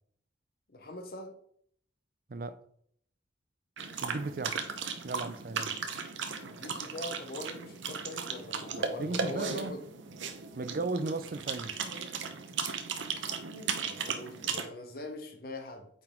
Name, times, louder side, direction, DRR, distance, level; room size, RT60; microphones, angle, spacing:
voice 1, 0.7-1.3 6.4-9.8 13.9-15.9, left 1 dB, 50° left, 0.9 m, -42 dB
sound 1, 3.8-14.7, right 6 dB, 80° right, 0.8 m, -36 dB
voice 2, 4.0-4.6 5.0-5.7 9.0-9.8 10.6-11.7, right 3 dB, 50° right, 0.5 m, -35 dB
8.8 x 3.9 x 3.8 m
head